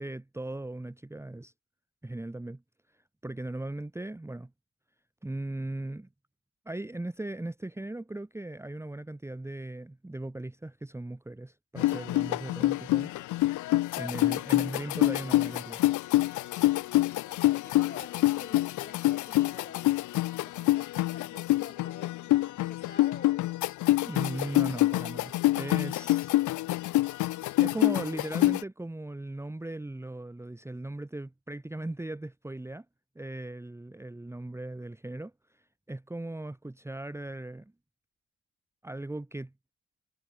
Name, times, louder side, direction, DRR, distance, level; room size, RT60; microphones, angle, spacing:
voice 1, 0.0-1.5 2.0-2.6 2.9-4.5 5.2-6.1 6.6-13.1 13.9-15.8 24.0-26.4 27.6-32.8 33.1-37.7 38.8-39.5, right 2 dB, 10° right, 1.3 m, -38 dB
sound 1, 11.8-28.6, left 17 dB, 75° left, 0.7 m, -26 dB
voice 2, 17.3-19.9 20.4-23.4, left 5 dB, 35° left, 7.6 m, -48 dB
cardioid pair, 90°, 30 cm